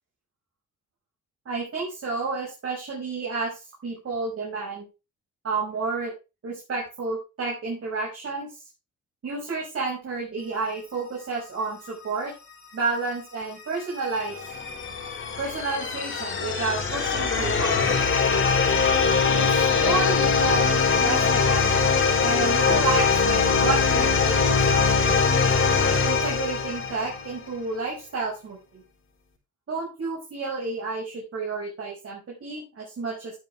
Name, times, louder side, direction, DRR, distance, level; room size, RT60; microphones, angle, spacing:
voice 1, 1.5-4.9 5.4-6.1 6.4-8.5 9.2-12.3 12.7-14.4 15.4-17.8 19.3-25.1 26.0-28.8 29.7-33.3, right 4 dB, 50° right, -3 dB, 5.8 m, -31 dB
sound 1, 13.6-27.4, left 5 dB, 40° left, 4.9 m, -22 dB
12.5 x 9.3 x 3.5 m, 0.29 s
cardioid pair, 90°, 30 cm